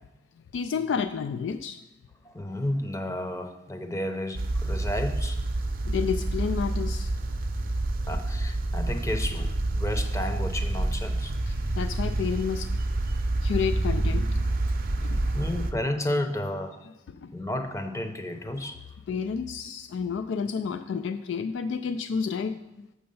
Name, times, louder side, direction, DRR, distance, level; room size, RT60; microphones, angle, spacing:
voice 1, 0.5-1.8 5.8-7.1 11.5-12.7 13.4-14.4 15.0-15.4 17.1-17.3 19.1-22.8, left 6 dB, 75° left, 10 dB, 0.3 m, -30 dB
voice 2, 2.2-5.4 8.1-11.4 15.3-16.8 17.3-18.8, left 1 dB, 15° left, 6 dB, 0.7 m, -32 dB
sound 1, 4.3-15.7, right 2 dB, 50° right, 0.6 m, -28 dB
6.8 x 6.5 x 5.4 m, 0.95 s
head